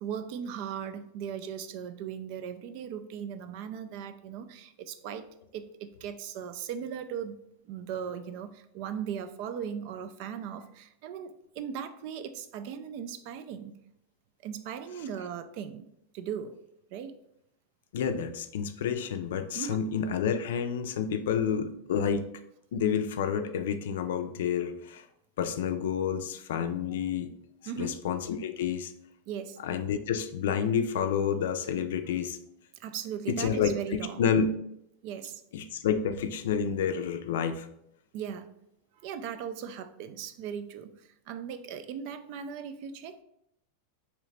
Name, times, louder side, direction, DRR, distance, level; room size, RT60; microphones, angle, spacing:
voice 1, 0.0-5.3 5.5-7.4 7.6-13.7 14.4-16.6 16.9-17.2 19.5-19.9 27.7-28.0 29.3-29.6 32.8-34.3 35.0-35.4 38.1-38.5 38.9-43.2, right 8 dB, 45° right, 11 dB, 0.3 m, -38 dB
voice 2, 17.9-22.2 22.7-25.0 25.4-27.3 27.8-28.9 29.6-32.4 33.3-34.5 35.5-37.7, left 7 dB, 75° left, 8 dB, 0.4 m, -29 dB
3.7 x 3.0 x 3.2 m, 0.75 s
supercardioid pair, 165°, 0 cm